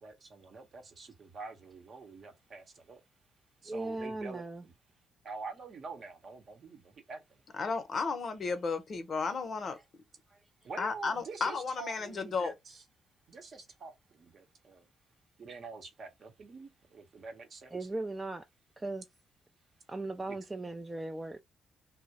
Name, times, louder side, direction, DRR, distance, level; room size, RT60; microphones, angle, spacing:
voice 1, 0.0-3.0 3.6-4.7 5.2-7.4 8.0-8.1 10.6-12.8 13.3-14.9 15.4-17.9 20.3-20.4, right 4 dB, 55° right, 0.7 m, -47 dB
voice 2, 3.7-4.6 10.3-10.4 17.7-18.5 18.8-19.1 19.9-21.4, right 2 dB, 20° right, 0.3 m, -38 dB
voice 3, 7.6-9.8 10.8-12.5, left 4 dB, 50° left, 0.7 m, -33 dB
2.2 x 2.0 x 2.7 m
cardioid pair, 85°, 0 cm